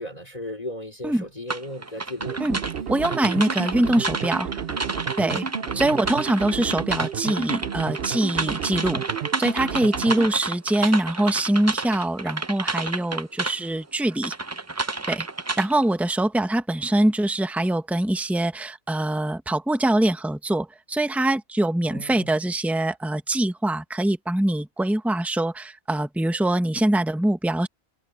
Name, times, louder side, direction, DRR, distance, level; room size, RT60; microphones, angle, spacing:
voice 1, 0.0-2.5 5.6-6.0 21.8-22.3, left 1 dB, 35° left, 4.5 m, -36 dB
sound 1, 1.5-13.6 14.1-15.8, right 3 dB, 20° right, 0.5 m, -30 dB
sound 2, 2.2-10.3, right 8 dB, 65° right, 1.0 m, -32 dB
voice 2, 2.9-4.5 5.2-5.5 5.7-9.0 9.4-14.3 15.1-15.3 15.6-27.7, right 1 dB, ahead, 1.3 m, -23 dB
omnidirectional pair, 1.1 m